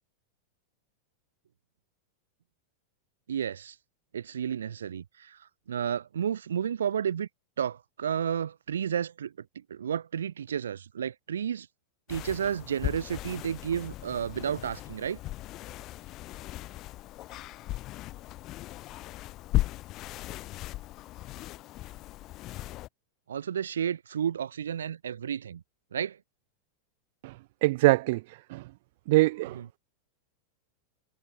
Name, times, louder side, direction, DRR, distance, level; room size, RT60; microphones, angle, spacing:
voice 1, 3.3-3.8 4.1-7.3 7.6-11.7 12.1-15.2 23.3-25.6 25.9-26.2 29.5-29.7, right 8 dB, 65° right, 2.0 m, -32 dB
sound 1, 12.1-22.9, left 16 dB, 35° left, 1.1 m, -37 dB
voice 2, 27.6-28.2 28.5-28.6 29.1-29.8, right 20 dB, 50° right, 0.3 m, -23 dB
figure-of-eight pair, 90°, 0 cm